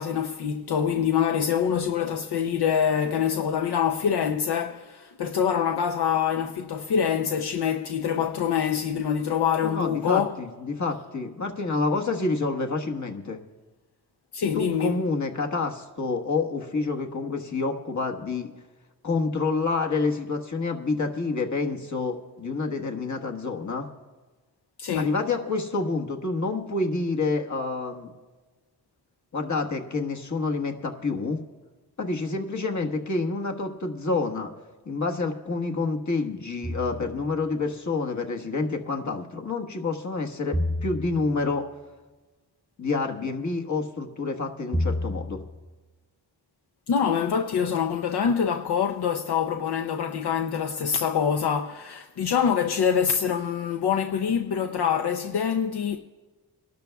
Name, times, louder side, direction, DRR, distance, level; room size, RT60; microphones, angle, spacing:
voice 1, 0.0-10.3 14.3-14.9 24.8-25.1 32.8-32.9 46.9-56.0, left 7 dB, 75° left, 0.6 m, -25 dB
voice 2, 9.6-13.4 14.5-18.5 19.0-23.9 24.9-28.1 29.3-31.4 32.0-34.5 34.8-41.6 42.8-45.4, left 3 dB, 45° left, 1.4 m, -28 dB
sound 1, 36.6-37.4 40.5-41.6 44.7-45.7, left 1 dB, 5° right, 0.6 m, -30 dB
27.0 x 12.0 x 2.3 m
wide cardioid pair, 90°, 40 cm